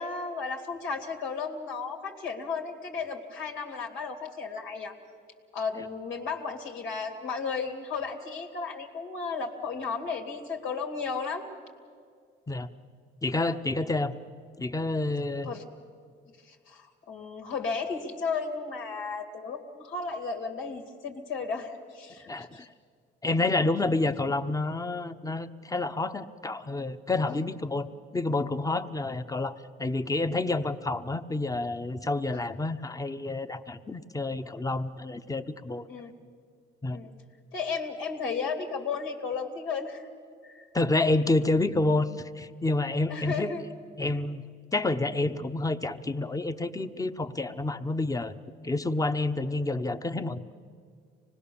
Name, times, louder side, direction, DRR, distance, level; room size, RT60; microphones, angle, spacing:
voice 1, 0.0-4.9 5.5-11.5 13.5-13.9 15.5-15.6 16.5-22.7 27.3-27.4 32.3-32.4 35.9-36.1 36.9-37.1 37.5-40.1 40.4-40.7 43.1-43.6, left 5 dB, 85° left, 2 dB, 2.7 m, -34 dB
voice 2, 13.2-14.2 14.6-15.5 22.3-22.6 23.2-35.9 36.8-37.0 40.7-43.5 44.0-44.4 44.7-48.3 48.6-50.4, left 2 dB, 15° left, 10 dB, 0.9 m, -29 dB
25.0 x 20.0 x 7.1 m, 2.1 s
cardioid pair, 90°, 20 cm